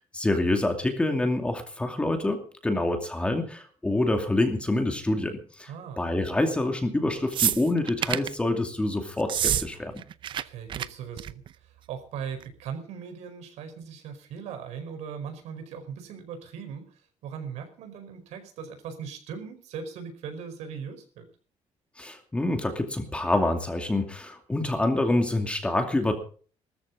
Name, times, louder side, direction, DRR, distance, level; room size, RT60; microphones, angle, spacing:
voice 1, 0.2-5.7 6.0-9.9 22.0-26.2, left 2 dB, 10° left, 5 dB, 2.5 m, -26 dB
voice 2, 5.7-6.1 10.3-16.9 17.2-21.3, right 7 dB, 85° right, 7 dB, 4.9 m, -39 dB
sound 1, 7.3-8.3 9.2-9.7 9.9-10.4 10.7-10.9 11.2-11.5 12.4-12.5, right 10 dB, 45° right, 0.7 m, -27 dB
19.0 x 14.0 x 4.0 m, 0.42 s
cardioid pair, 160°, 11 cm